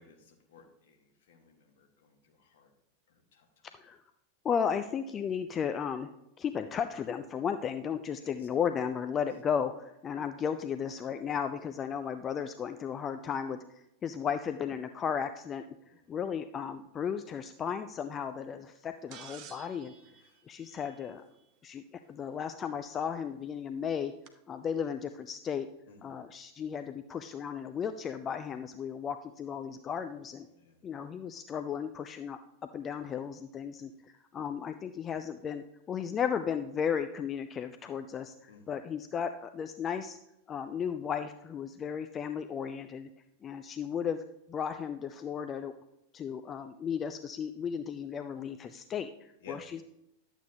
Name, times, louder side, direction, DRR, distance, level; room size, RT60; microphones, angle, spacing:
voice 1, 0.0-2.7 3.1-3.4 8.2-8.3 15.8-16.0 20.1-20.4 25.9-26.1 30.5-30.8 38.5-38.6 49.4-49.6, left 7 dB, 55° left, 3 dB, 1.5 m, -55 dB
voice 2, 4.4-6.1 6.4-19.9 20.5-21.2 21.6-24.1 24.5-25.7 26.0-30.5 30.8-32.4 32.7-40.2 40.5-43.1 43.4-44.2 44.5-45.7 46.1-49.8, left 7 dB, 25° left, 9 dB, 0.4 m, -35 dB
sound 1, 19.1-21.4 23.0-23.1 24.3-24.4, right 8 dB, 40° right, 0.8 m, -52 dB
11.5 x 8.0 x 2.8 m, 0.84 s
figure-of-eight pair, 90°, 0 cm